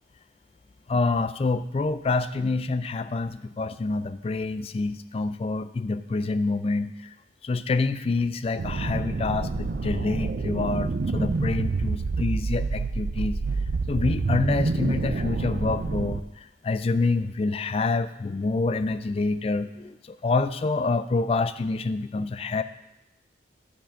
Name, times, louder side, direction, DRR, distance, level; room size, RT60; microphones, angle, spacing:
voice 1, 0.9-6.9 7.4-13.4 13.9-16.2 16.6-22.6, left 3 dB, 35° left, 12 dB, 0.3 m, -27 dB
sound 1, 8.6-16.2, right 3 dB, 50° right, 0.4 m, -27 dB
11.0 x 3.7 x 5.7 m, 0.89 s
head